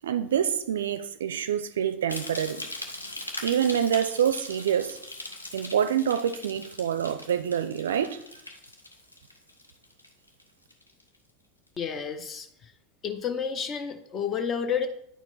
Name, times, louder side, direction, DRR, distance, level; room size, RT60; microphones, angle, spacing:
voice 1, 0.0-2.6 3.4-5.0 5.5-8.2, right 9 dB, 70° right, 0.4 m, -26 dB
sound 1, 2.1-10.4 10.7-11.2 11.7-11.8, left 2 dB, 90° left, 0.7 m, -40 dB
voice 2, 11.8-12.7 13.0-14.9, left 7 dB, 35° left, 0.7 m, -30 dB
9.2 x 4.4 x 4.0 m
figure-of-eight pair, 80°, 0 cm